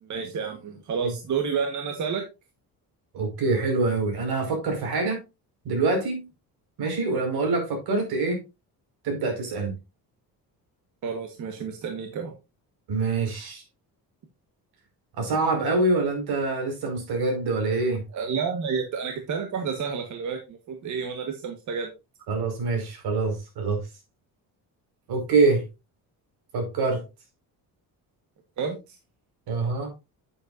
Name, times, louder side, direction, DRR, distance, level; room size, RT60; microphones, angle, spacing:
voice 1, 0.0-2.2 11.0-12.3 18.1-21.9 28.6-29.0, right 6 dB, 50° right, 1.6 m, -30 dB
voice 2, 3.1-5.2 5.7-6.2 6.8-8.4 9.0-9.7 12.9-13.6 15.2-18.0 22.3-23.8 25.1-25.6 26.5-27.0 29.5-29.9, right 3 dB, 80° right, 5.4 m, -25 dB
9.4 x 8.8 x 2.7 m
cardioid pair, 170°, 37 cm